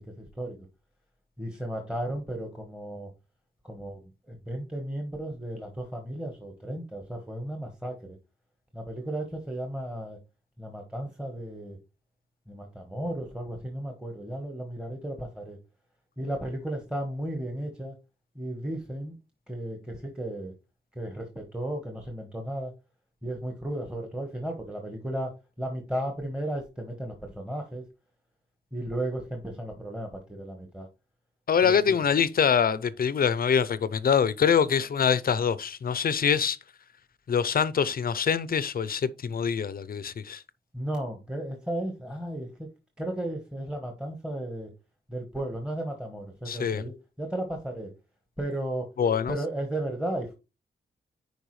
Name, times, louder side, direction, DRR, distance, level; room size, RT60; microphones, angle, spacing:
voice 1, 0.2-0.6 1.4-3.1 3.6-4.0 4.3-8.2 8.7-10.2 10.6-11.8 12.5-15.6 16.2-17.9 18.3-19.2 19.5-20.5 20.9-22.7 23.2-25.3 25.6-27.8 28.7-30.9 31.6-32.0 40.7-42.7 43.0-44.7 45.1-47.9 48.4-48.9 49.3-50.3, right 1 dB, 5° right, 1.2 m, -34 dB
voice 2, 31.5-36.6 37.3-40.4 46.5-46.8 49.0-49.4, left 7 dB, 50° left, 0.6 m, -24 dB
10.0 x 4.6 x 3.2 m
wide cardioid pair, 165°, 19 cm